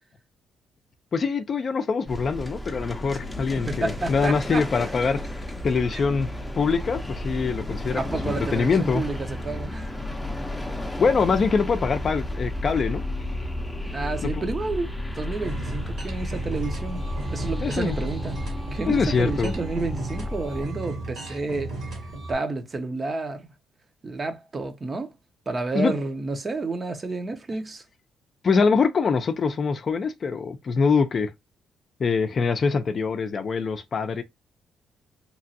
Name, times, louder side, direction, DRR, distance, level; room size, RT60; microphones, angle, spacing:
voice 1, 1.1-5.2 5.6-6.3 6.6-9.0 11.0-13.0 14.2-14.5 17.6-18.0 18.9-19.5 25.7-25.9 28.4-31.3 32.0-34.2, left 5 dB, 45° left, 0.5 m, -24 dB
sound 1, 2.1-20.7, left 1 dB, 5° left, 0.6 m, -32 dB
voice 2, 3.6-4.9 5.9-6.0 7.9-9.9 12.8-12.9 13.9-18.4 18.7-21.7 22.3-23.5 24.0-25.1 25.5-27.8, right 3 dB, 30° right, 0.7 m, -30 dB
sound 2, 15.4-22.3, right 2 dB, 70° right, 1.6 m, -35 dB
2.9 x 2.4 x 2.7 m
cardioid pair, 90°, 0 cm